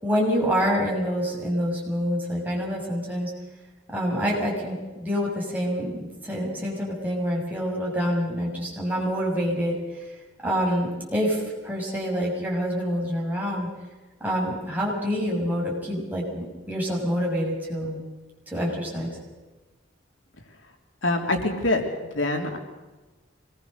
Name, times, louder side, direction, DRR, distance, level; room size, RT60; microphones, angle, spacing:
voice 1, 0.0-3.3 3.9-9.7 10.4-13.7 14.2-18.0 18.5-19.2, equal, 10° right, -4 dB, 6.5 m, -27 dB
voice 2, 21.0-21.8 22.1-22.6, left 2 dB, 85° left, 3 dB, 3.2 m, -24 dB
25.0 x 20.5 x 6.7 m, 1.2 s
head